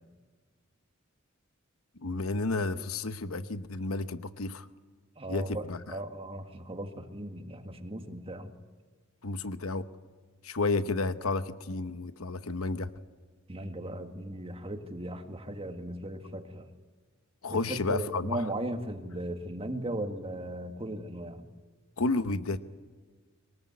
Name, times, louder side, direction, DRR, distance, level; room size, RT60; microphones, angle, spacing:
voice 1, 2.0-4.7 5.3-6.0 9.2-9.9 10.4-12.9 17.4-18.4 22.0-22.6, left 3 dB, 85° left, 11 dB, 1.0 m, -31 dB
voice 2, 5.2-8.5 13.5-16.7 17.5-21.4, right 1 dB, 25° right, 6 dB, 1.8 m, -37 dB
23.5 x 20.5 x 9.6 m, 1.4 s
head